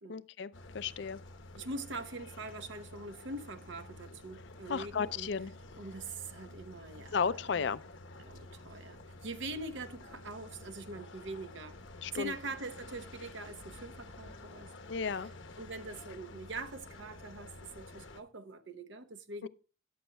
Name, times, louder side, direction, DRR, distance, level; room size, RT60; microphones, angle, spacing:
voice 1, 0.1-1.2 4.7-5.5 7.1-7.8 12.0-12.3 14.9-15.3 19.4-19.5, left 6 dB, 65° left, 0.4 m, -34 dB
sound 1, 0.5-18.2, left 2 dB, 80° left, 1.0 m, -51 dB
voice 2, 1.5-5.3 5.8-7.7 8.2-11.8 12.1-14.7 15.2-15.3 15.6-19.5, right 2 dB, 70° right, 0.9 m, -43 dB
14.0 x 10.0 x 2.2 m
head